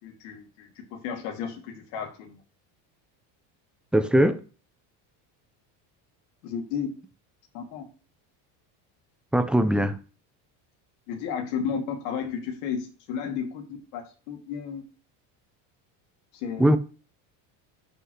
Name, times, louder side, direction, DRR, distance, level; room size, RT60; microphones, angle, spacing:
voice 1, 0.0-2.4 6.4-6.9 7.5-7.8 11.1-13.6 13.9-14.8 16.4-16.8, left 7 dB, 85° left, 2.7 m, -33 dB
voice 2, 3.9-4.4 9.3-10.0 16.6-16.8, right 1 dB, 5° right, 0.3 m, -20 dB
11.5 x 5.6 x 3.2 m
cardioid pair, 145°, 45 cm